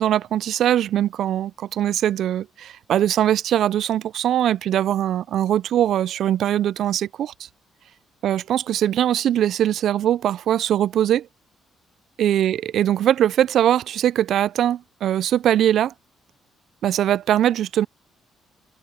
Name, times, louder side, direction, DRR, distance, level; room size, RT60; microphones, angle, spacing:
voice 1, 0.0-7.3 8.2-11.3 12.2-15.9 16.8-17.9, right 11 dB, 70° right, 0.3 m, -21 dB
cardioid pair, 90°, 0 cm